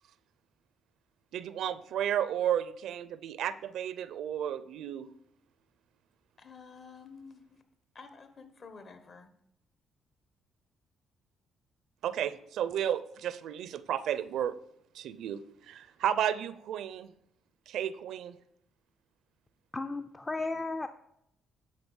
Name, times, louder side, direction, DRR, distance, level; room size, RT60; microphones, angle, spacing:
voice 1, 1.3-5.1 12.0-14.5 14.9-17.1 17.7-18.4, right 10 dB, 80° right, 15 dB, 0.5 m, -33 dB
voice 2, 6.4-7.6 7.9-9.4, left 5 dB, 45° left, 9 dB, 1.2 m, -50 dB
voice 3, 19.7-20.9, left 3 dB, 20° left, 8 dB, 0.5 m, -34 dB
10.5 x 3.9 x 7.0 m, 0.76 s
cardioid pair, 90°, 0 cm